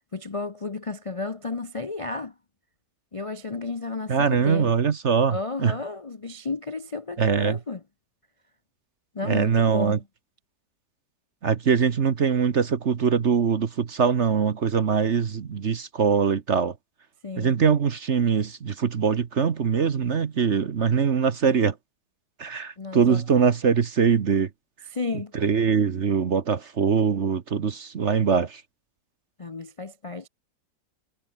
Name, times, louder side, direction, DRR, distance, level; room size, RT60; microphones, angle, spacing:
voice 1, 0.1-2.3 3.1-4.7 5.3-7.8 9.1-10.0 17.2-17.5 22.8-23.2 24.9-25.3 29.4-30.3, left 3 dB, 40° left, 0.5 m, -32 dB
voice 2, 4.1-5.7 7.2-7.6 9.2-10.0 11.4-16.7 17.4-21.7 22.4-24.5 25.3-28.6, right 6 dB, 45° right, 1.3 m, -22 dB
omnidirectional pair, 1.8 m